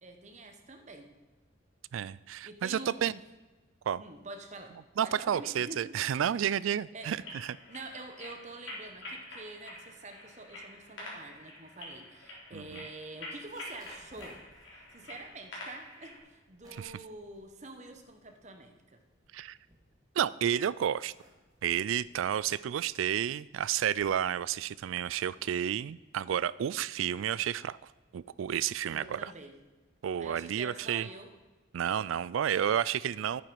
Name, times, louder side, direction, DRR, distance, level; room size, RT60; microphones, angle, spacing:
voice 1, 0.0-1.1 2.4-3.2 4.0-5.9 6.2-6.3 6.9-7.3 7.7-14.4 14.7-19.0 28.9-29.5 30.2-31.3, right 2 dB, 35° right, 5 dB, 1.2 m, -46 dB
voice 2, 1.9-3.1 3.9-4.0 5.0-7.6 12.5-12.8 16.7-16.9 19.3-19.6 20.2-21.1 21.6-27.8 28.1-29.3 30.0-31.1 31.7-33.4, right 9 dB, 85° right, 19 dB, 0.3 m, -31 dB
sound 1, 7.1-16.2, left 1 dB, 80° left, 3.6 m, -47 dB
sound 2, 13.3-18.5 18.9-20.3 20.8-29.6, equal, 20° right, 1.9 m, -63 dB
10.5 x 9.1 x 4.7 m, 1.2 s
head